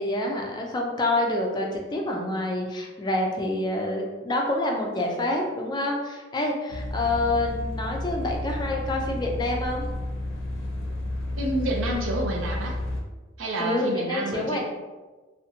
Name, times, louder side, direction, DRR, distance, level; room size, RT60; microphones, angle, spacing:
voice 1, 0.0-9.9 13.6-14.6, left 2 dB, 20° left, 0 dB, 0.3 m, -27 dB
sound 1, 6.7-13.0, left 1 dB, 90° left, 0.5 m, -31 dB
voice 2, 11.4-12.8 13.4-14.6, right 1 dB, 90° right, 1 dB, 0.5 m, -29 dB
2.5 x 2.0 x 2.7 m, 1.2 s
head